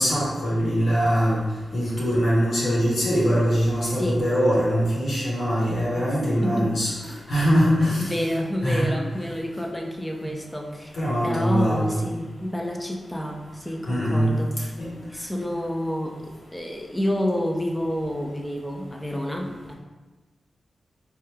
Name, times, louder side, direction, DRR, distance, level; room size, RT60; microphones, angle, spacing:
voice 1, 0.0-1.4 1.7-6.9 7.3-8.1 8.6-8.9 10.9-12.0 13.9-14.3 14.8-14.9, equal, 75° left, -7 dB, 1.1 m, -22 dB
voice 2, 3.9-4.2 6.4-7.2 8.0-11.0 11.2-14.7 15.1-19.7, equal, 10° left, 2 dB, 0.4 m, -29 dB
3.2 x 2.2 x 3.3 m, 1.2 s
cardioid pair, 65°, 0 cm